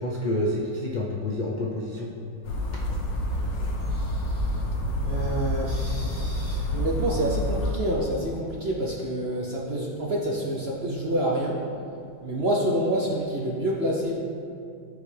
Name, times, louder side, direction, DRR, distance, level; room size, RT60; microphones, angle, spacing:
voice 1, 0.0-2.1, left 1 dB, 60° left, -3 dB, 0.4 m, -28 dB
sound 1, 2.4-7.7, left 1 dB, 80° left, 1.7 m, -28 dB
voice 2, 5.0-11.6 12.2-14.2, right 1 dB, 50° right, -3 dB, 0.8 m, -27 dB
13.5 x 5.3 x 3.3 m, 2.4 s
omnidirectional pair, 2.0 m